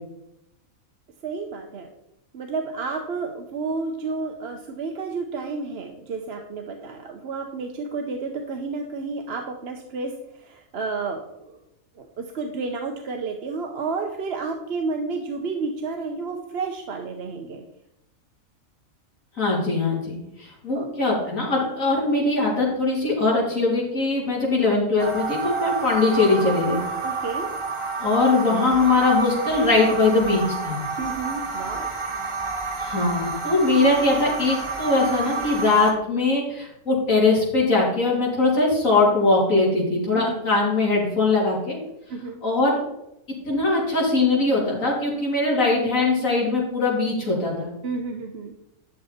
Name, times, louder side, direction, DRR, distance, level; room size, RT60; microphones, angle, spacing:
voice 1, 1.2-1.9 2.3-11.6 12.0-17.6 20.7-20.9 27.0-27.5 31.0-31.9 40.1-40.4 42.1-42.4 47.8-48.6, right 4 dB, 50° right, 3 dB, 1.0 m, -31 dB
voice 2, 19.4-26.8 28.0-30.8 32.8-41.8 42.4-42.8 43.5-47.7, left 3 dB, 65° left, -4 dB, 3.7 m, -21 dB
sound 1, 25.0-35.9, right 4 dB, 25° right, 1.1 m, -29 dB
11.5 x 6.8 x 4.2 m, 0.85 s
omnidirectional pair, 1.5 m